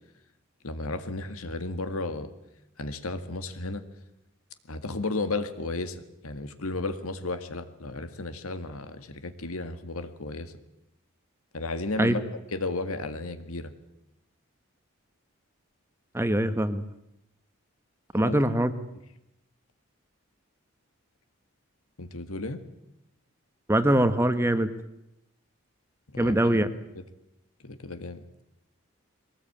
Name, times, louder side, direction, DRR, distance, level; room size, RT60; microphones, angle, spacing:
voice 1, 0.6-2.3 2.8-3.8 4.7-10.5 11.5-12.2 12.5-13.7 18.2-18.4 22.0-22.6 26.1-26.6 27.0-27.1 27.6-28.2, left 2 dB, 85° left, 10 dB, 1.9 m, -33 dB
voice 2, 16.1-16.8 18.1-18.7 23.7-24.7 26.2-26.7, right 1 dB, 10° right, 11 dB, 1.1 m, -23 dB
22.5 x 19.0 x 8.8 m, 0.85 s
head